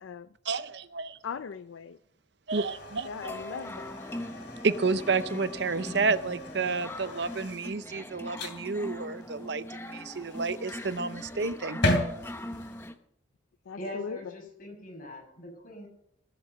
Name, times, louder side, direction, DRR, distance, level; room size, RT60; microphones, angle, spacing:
voice 1, 0.4-1.2 2.5-3.4 4.6-11.8, right 4 dB, 60° right, 13 dB, 0.7 m, -30 dB
voice 2, 1.2-2.0 3.1-4.0 13.7-14.2, left 6 dB, 90° left, 14 dB, 0.5 m, -39 dB
sound 1, 2.5-12.9, left 1 dB, 60° left, 3.0 m, -37 dB
sound 2, 3.2-12.9, left 1 dB, 10° left, 0.9 m, -41 dB
voice 3, 13.7-15.9, left 1 dB, 45° left, 0 dB, 6.6 m, -42 dB
18.5 x 8.0 x 6.7 m, 0.70 s
head